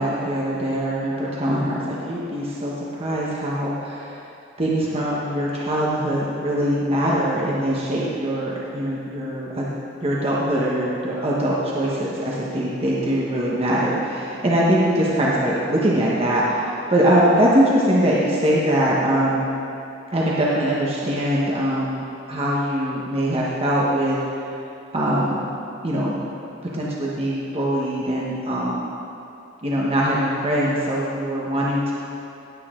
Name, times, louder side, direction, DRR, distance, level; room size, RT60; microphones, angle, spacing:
voice 1, 0.0-4.2 4.6-9.7 10.0-19.5 20.1-24.2 24.9-26.2 26.7-28.9 29.6-31.9, right 1 dB, 30° right, -5 dB, 1.2 m, -22 dB
17.0 x 8.5 x 3.8 m, 2.7 s
head